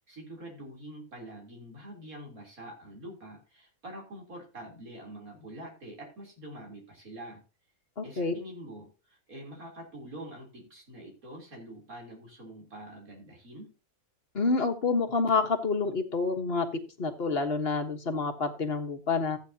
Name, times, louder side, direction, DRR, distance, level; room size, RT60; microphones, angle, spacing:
voice 1, 0.1-7.4 8.0-13.7, right 1 dB, 80° right, 0 dB, 4.0 m, -45 dB
voice 2, 8.0-8.3 14.3-16.7 17.0-19.4, left 4 dB, 45° left, 5 dB, 1.5 m, -28 dB
14.5 x 8.9 x 2.8 m, 0.32 s
omnidirectional pair, 1.5 m